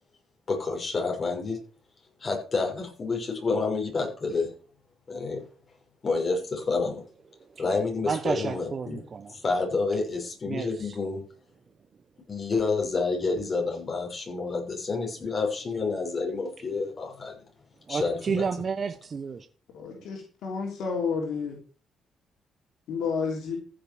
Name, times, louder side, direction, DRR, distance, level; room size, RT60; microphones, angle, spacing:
voice 1, 0.5-1.6 2.2-4.5 5.1-5.4 6.0-7.0 7.6-9.0 9.3-11.2 12.3-17.4 17.9-18.5, left 4 dB, 40° left, 6.4 m, -29 dB
voice 2, 8.0-9.3 10.5-11.0 17.9-19.5, right 5 dB, 45° right, 1.0 m, -31 dB
voice 3, 19.7-21.6 22.9-23.6, left 5 dB, 85° left, 3.3 m, -30 dB
15.0 x 6.7 x 6.3 m
cardioid pair, 90°, 0 cm